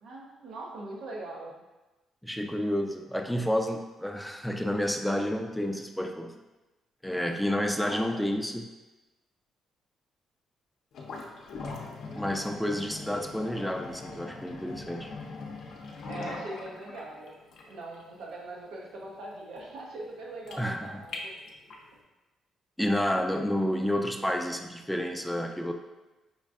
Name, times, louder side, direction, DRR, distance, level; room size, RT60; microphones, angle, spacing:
voice 1, 0.0-1.6 7.7-8.5 16.1-21.4, right 2 dB, 85° right, -2 dB, 0.5 m, -42 dB
voice 2, 2.2-6.4 7.0-8.6 12.1-15.1 20.6-21.0 22.8-25.7, equal, ahead, 4 dB, 0.4 m, -30 dB
sound 1, 10.9-21.9, left 3 dB, 70° left, 0.5 m, -42 dB
5.1 x 2.5 x 2.3 m, 1.1 s
cardioid pair, 90°, 0 cm